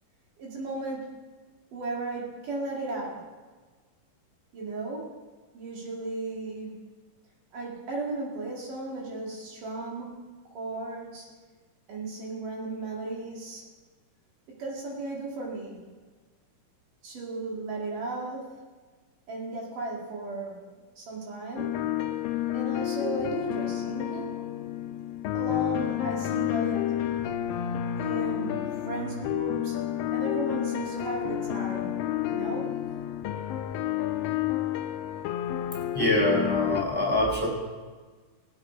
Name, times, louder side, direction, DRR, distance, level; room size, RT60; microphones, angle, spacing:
voice 1, 0.4-1.2 1.7-3.3 4.5-5.1 5.5-6.8 7.5-10.2 10.5-11.3 11.9-13.7 14.5-15.8 17.0-18.6 19.3-20.6 21.0-21.8 22.5-24.4 25.3-27.0 28.0-29.8 30.1-32.0 32.3-32.8, right 2 dB, 65° right, -3 dB, 3.8 m, -35 dB
sound 1, 21.6-36.8, left 12 dB, 85° left, 2.5 m, -30 dB
voice 2, 35.9-37.5, left 1 dB, 5° left, -3 dB, 3.6 m, -25 dB
20.5 x 8.3 x 5.0 m, 1.4 s
omnidirectional pair, 4.0 m